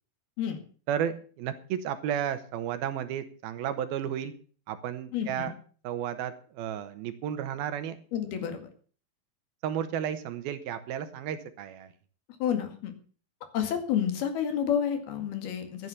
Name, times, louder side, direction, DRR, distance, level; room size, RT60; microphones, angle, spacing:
voice 1, 0.9-4.3 4.7-5.5 5.8-8.0 9.6-11.9, right 9 dB, 75° right, 11 dB, 3.0 m, -33 dB
voice 2, 5.1-5.5 8.1-8.7 12.4-12.9 13.5-15.9, left 9 dB, 75° left, 7 dB, 4.0 m, -29 dB
14.0 x 9.4 x 7.0 m, 0.42 s
omnidirectional pair, 4.5 m